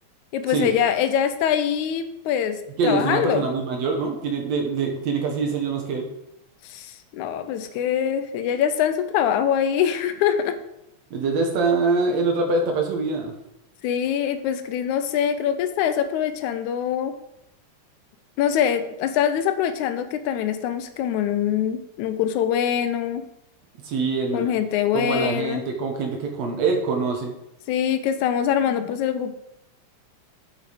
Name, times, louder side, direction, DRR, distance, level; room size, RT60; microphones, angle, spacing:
voice 1, 0.3-2.6 2.8-3.5 6.6-10.6 13.8-17.2 18.4-23.2 24.3-25.6 27.7-29.3, left 9 dB, 80° left, 10 dB, 2.0 m, -23 dB
voice 2, 2.8-6.1 11.1-13.3 23.8-24.5 24.9-27.3, right 4 dB, 65° right, 3 dB, 2.3 m, -24 dB
8.5 x 6.2 x 5.0 m, 0.85 s
omnidirectional pair, 3.5 m